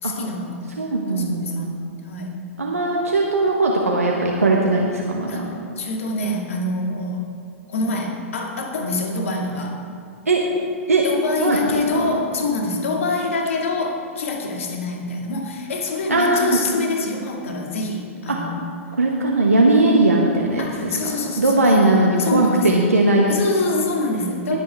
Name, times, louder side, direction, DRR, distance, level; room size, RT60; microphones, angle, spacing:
voice 1, 0.0-1.7 2.0-2.4 5.3-7.2 7.7-9.8 11.0-18.6 20.6-22.8 23.3-24.6, left 2 dB, 65° left, 1 dB, 2.0 m, -26 dB
voice 2, 0.8-1.9 2.6-5.5 10.3-10.4 10.9-11.0 11.4-11.7 11.9-12.2 16.1-16.5 18.3-18.4 19.0-23.5 24.5-24.6, right 2 dB, 85° right, -1 dB, 1.3 m, -19 dB
19.5 x 8.6 x 3.5 m, 2.7 s
figure-of-eight pair, 105°, 8 cm